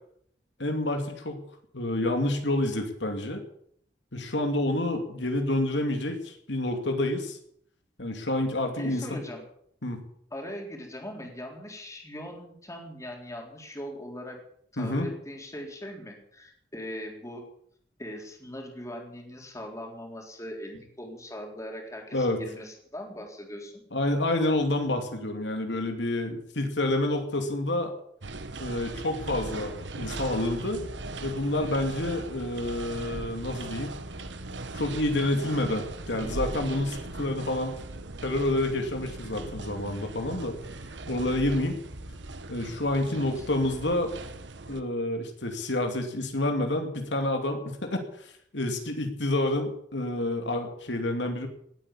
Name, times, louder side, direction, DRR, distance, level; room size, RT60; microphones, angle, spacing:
voice 1, 0.6-1.4 1.7-3.4 4.1-7.4 8.0-9.0 9.8-10.0 14.8-15.1 22.1-22.4 23.9-27.9 28.6-30.9 31.2-33.9 34.7-37.8 38.2-40.6 41.1-41.8 42.5-44.1 44.7-51.5, left 1 dB, 75° left, 4 dB, 2.7 m, -28 dB
voice 2, 8.8-9.4 10.3-14.4 14.7-17.5 18.0-23.8 43.1-43.3, equal, 20° left, 1 dB, 3.9 m, -40 dB
sound 1, 28.2-44.8, right 2 dB, 85° right, 1.4 m, -39 dB
19.0 x 8.8 x 8.6 m, 0.67 s
head